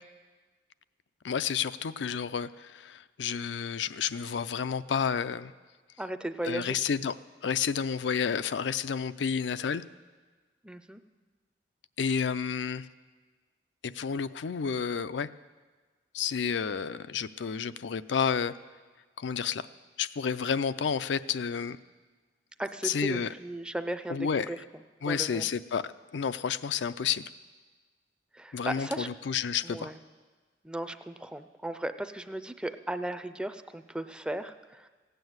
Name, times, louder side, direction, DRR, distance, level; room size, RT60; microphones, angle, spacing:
voice 1, 1.2-5.5 6.4-7.1 7.4-9.8 12.0-12.9 13.8-15.3 16.1-18.5 19.2-19.7 20.0-21.8 22.8-23.3 24.1-24.5 25.0-27.2 28.5-29.9, left 6 dB, 85° left, 14 dB, 0.5 m, -30 dB
voice 2, 6.0-6.8 10.6-11.0 22.6-24.6 25.0-25.5 28.3-29.1 29.6-30.0 30.6-34.9, right 1 dB, 5° right, 10 dB, 0.4 m, -36 dB
16.0 x 9.2 x 7.9 m, 1.4 s
head